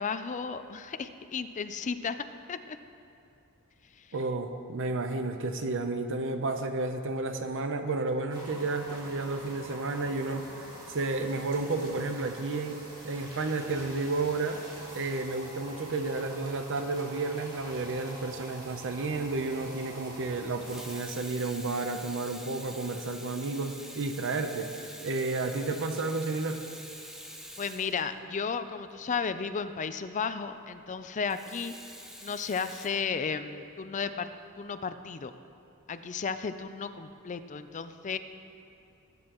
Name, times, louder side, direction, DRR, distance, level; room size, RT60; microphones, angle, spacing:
voice 1, 0.0-2.8 4.0-4.1 27.6-31.7 32.2-34.3 34.6-35.3 35.9-38.2, left 5 dB, 35° left, 10 dB, 0.4 m, -34 dB
voice 2, 4.1-12.8 13.0-14.6 14.9-24.7 25.0-26.6, right 3 dB, 60° right, 7 dB, 0.7 m, -32 dB
sound 1, 8.3-21.0, right 1 dB, 20° right, 2.4 m, -46 dB
Water tap faucet / Sink (filling or washing), 20.6-28.6 31.3-32.9, equal, ahead, 0.8 m, -46 dB
19.0 x 9.4 x 3.0 m, 2.7 s
head